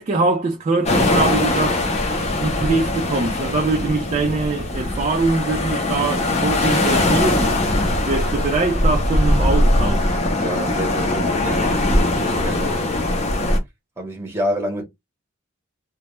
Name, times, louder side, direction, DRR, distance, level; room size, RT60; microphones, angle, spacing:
voice 1, 0.0-1.9 2.4-7.6 8.1-10.2, right 3 dB, 30° right, 0.3 m, -23 dB
sound 1, 0.8-13.6, left 1 dB, 30° left, 0.5 m, -20 dB
voice 2, 10.4-11.7 12.2-12.7 14.0-14.8, equal, 10° right, 0.7 m, -27 dB
2.2 x 2.0 x 2.9 m
head